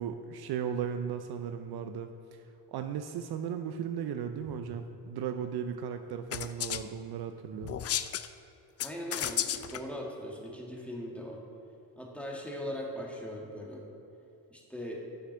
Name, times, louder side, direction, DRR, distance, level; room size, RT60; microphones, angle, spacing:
voice 1, 0.0-2.1 2.7-7.8, right 8 dB, 60° right, 8 dB, 0.5 m, -36 dB
sound 1, 6.3-6.8 7.6-8.3 8.8-9.8, left 10 dB, 35° left, 0.4 m, -33 dB
voice 2, 8.8-11.4 12.0-13.8 14.5-15.0, equal, 5° left, -2 dB, 1.8 m, -40 dB
6.5 x 5.8 x 6.3 m, 2.8 s
hypercardioid pair, 50°, 45 cm